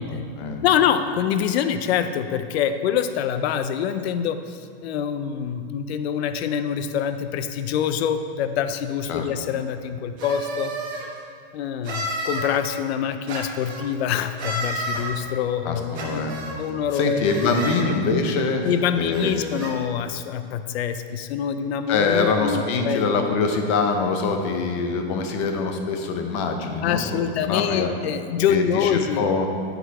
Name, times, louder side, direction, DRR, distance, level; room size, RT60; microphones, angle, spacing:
voice 1, 0.6-10.7 11.5-16.2 16.5-17.2 17.5-17.6 18.6-23.0 26.8-29.2, left 8 dB, 75° left, 10 dB, 0.5 m, -25 dB
sound 1, 10.2-11.1 11.8-12.5 13.3-13.8 14.4-15.0 15.9-16.5 17.2-17.8 18.6-18.7 19.1-19.7, right 1 dB, 25° right, 1.2 m, -31 dB
voice 2, 15.6-16.3 16.9-18.7 19.0-19.3 21.9-27.9 28.5-29.5, left 4 dB, 30° left, 4 dB, 0.6 m, -24 dB
11.0 x 4.0 x 4.7 m, 2.3 s
supercardioid pair, 175°, 32 cm